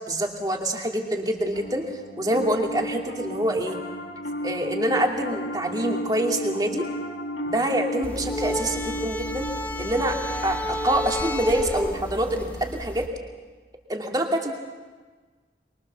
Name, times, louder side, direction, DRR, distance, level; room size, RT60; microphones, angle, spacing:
voice 1, 0.1-1.9 2.2-3.8 4.4-6.9 7.4-9.5 9.8-10.2 10.4-13.1 13.9-14.5, right 1 dB, 20° right, 2 dB, 2.4 m, -26 dB
Piano, 1.5-13.0, equal, 85° left, 2.4 m, -35 dB
sound 1, 8.0-13.1, left 1 dB, 10° left, 1.2 m, -31 dB
24.0 x 23.0 x 6.9 m, 1.4 s
head